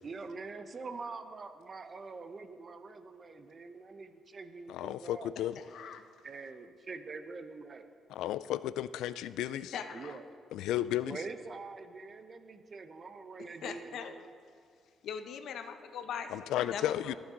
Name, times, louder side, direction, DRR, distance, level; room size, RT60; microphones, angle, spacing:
voice 1, 0.0-5.9 6.2-7.9 9.9-10.2 11.0-14.2, right 4 dB, 40° right, 9 dB, 0.8 m, -45 dB
voice 2, 4.7-5.6 8.1-9.8 10.5-11.2 16.3-17.2, left 12 dB, 90° left, 16 dB, 0.3 m, -33 dB
voice 3, 5.7-6.0 9.7-10.2 13.6-14.1 15.0-17.1, left 7 dB, 75° left, 8 dB, 0.8 m, -40 dB
20.5 x 7.1 x 3.8 m, 2.2 s
cardioid pair, 90°, 0 cm